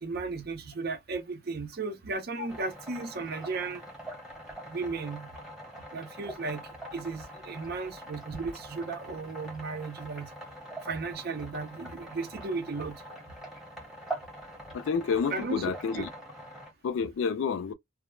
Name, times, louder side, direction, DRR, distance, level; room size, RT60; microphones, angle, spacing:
voice 1, 0.0-3.8 4.7-5.3 5.9-6.6 6.9-10.3 10.9-13.0 15.3-16.1, right 3 dB, 50° right, 0.5 m, -35 dB
sound 1, 2.5-16.7, right 1 dB, ahead, 0.9 m, -44 dB
voice 2, 14.7-16.1 16.8-17.7, left 6 dB, 65° left, 0.3 m, -29 dB
2.2 x 2.0 x 2.9 m
head